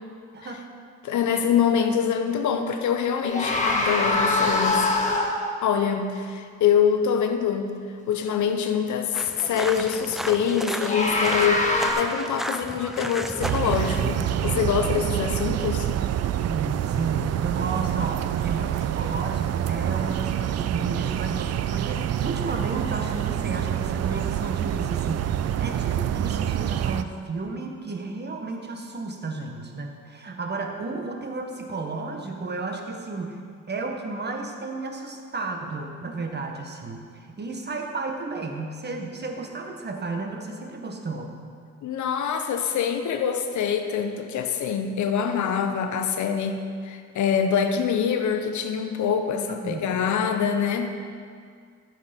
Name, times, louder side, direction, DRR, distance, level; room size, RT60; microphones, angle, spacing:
voice 1, 0.3-0.6 16.5-33.4 33.7-41.3 49.5-50.0, right 3 dB, 35° right, 3 dB, 1.6 m, -33 dB
voice 2, 1.0-4.9 5.6-7.8 8.1-15.9 41.8-51.0, left 7 dB, 70° left, 7 dB, 1.0 m, -25 dB
sound 1, 3.2-5.5 10.6-11.9, left 2 dB, 25° left, 1.8 m, -23 dB
sound 2, 9.1-14.6, equal, ahead, 0.5 m, -34 dB
sound 3, 13.4-27.0, right 11 dB, 55° right, 0.5 m, -27 dB
14.5 x 6.6 x 5.3 m, 2.1 s
cardioid pair, 90°, 30 cm